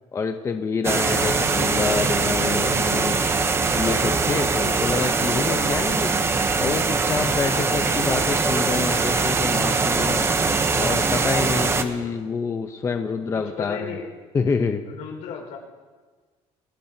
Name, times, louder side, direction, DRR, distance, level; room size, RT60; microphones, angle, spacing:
voice 1, 0.1-3.2 3.7-6.1 6.6-10.3 10.7-14.0 14.3-14.8, left 5 dB, 25° left, 6 dB, 0.7 m, -27 dB
sound 1, 0.8-11.8, right 4 dB, 20° right, 0.8 m, -22 dB
voice 2, 1.1-1.4 7.4-7.7 11.7-12.2 13.3-14.1 14.8-15.6, left 6 dB, 80° left, 1 dB, 4.9 m, -36 dB
28.0 x 12.0 x 2.8 m, 1.4 s
cardioid pair, 145°, 13 cm